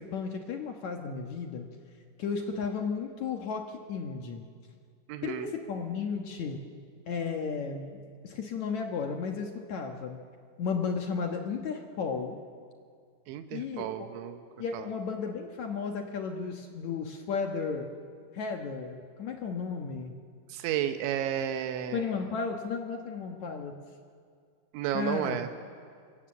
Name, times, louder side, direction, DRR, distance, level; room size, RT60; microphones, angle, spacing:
voice 1, 0.0-1.7 2.2-4.5 5.2-6.6 7.1-10.2 10.6-12.4 13.5-14.1 14.6-17.9 18.3-20.1 21.9-23.8 24.9-25.4, left 5 dB, 70° left, 3 dB, 1.7 m, -34 dB
voice 2, 5.1-5.5 13.3-14.4 14.7-14.9 20.5-22.0 24.7-25.5, right 10 dB, 90° right, 7 dB, 3.4 m, -32 dB
26.5 x 24.5 x 7.7 m, 2.2 s
omnidirectional pair, 5.2 m